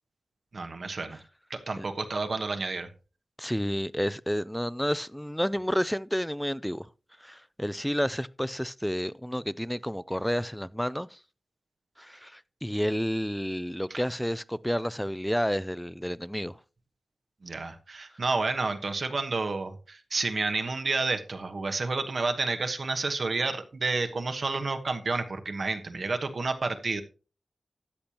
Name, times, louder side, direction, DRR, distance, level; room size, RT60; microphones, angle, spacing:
voice 1, 0.5-1.2 1.5-2.9 17.4-27.0, right 3 dB, 60° right, 1.1 m, -30 dB
voice 2, 3.4-6.9 7.2-11.2 12.0-16.6, equal, 5° left, 0.4 m, -30 dB
13.0 x 8.7 x 2.9 m
wide cardioid pair, 110°, 0 cm